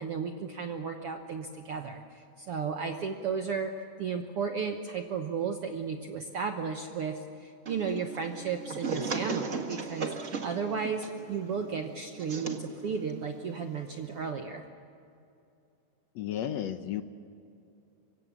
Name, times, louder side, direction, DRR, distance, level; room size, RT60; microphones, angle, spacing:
voice 1, 0.0-10.1 10.4-14.6, right 6 dB, 65° right, 5 dB, 1.5 m, -34 dB
sound 1, 7.6-14.3, right 4 dB, 40° right, 1.0 m, -38 dB
voice 2, 16.1-17.0, left 10 dB, 70° left, 9 dB, 1.6 m, -33 dB
25.0 x 25.0 x 7.4 m, 2.6 s
omnidirectional pair, 4.0 m